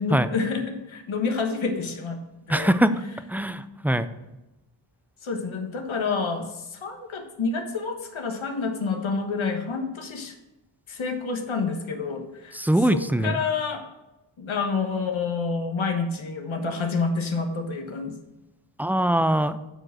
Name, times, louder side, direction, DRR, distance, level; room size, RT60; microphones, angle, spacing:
voice 1, 0.0-2.7 3.9-4.0 5.2-10.3 10.9-12.6 12.9-13.8 14.4-18.2, left 4 dB, 80° left, 4 dB, 1.3 m, -28 dB
voice 2, 2.5-2.9 3.3-4.1 12.5-13.4 18.8-19.6, right 1 dB, 5° right, 12 dB, 0.4 m, -22 dB
8.8 x 4.9 x 6.3 m, 0.98 s
wide cardioid pair, 70°, 48 cm